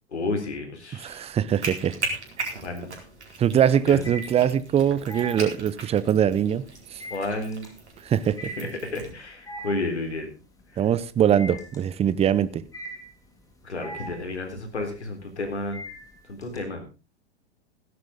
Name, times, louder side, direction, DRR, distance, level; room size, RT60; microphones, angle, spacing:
voice 1, 0.1-1.3 2.6-2.9 3.9-4.1 7.1-7.7 8.5-10.3 10.7-10.9 13.6-15.8 16.3-16.8, left 2 dB, 85° left, 4.0 m, -31 dB
voice 2, 1.0-2.0 3.4-6.6 8.1-8.5 10.8-12.6, right 9 dB, 20° right, 0.7 m, -22 dB
sound 1, 1.1-1.7 2.1-16.6, right 1 dB, 10° left, 3.6 m, -41 dB
sound 2, 1.5-9.1, right 3 dB, 80° right, 4.2 m, -38 dB
16.5 x 11.0 x 3.7 m
figure-of-eight pair, 100°, 33 cm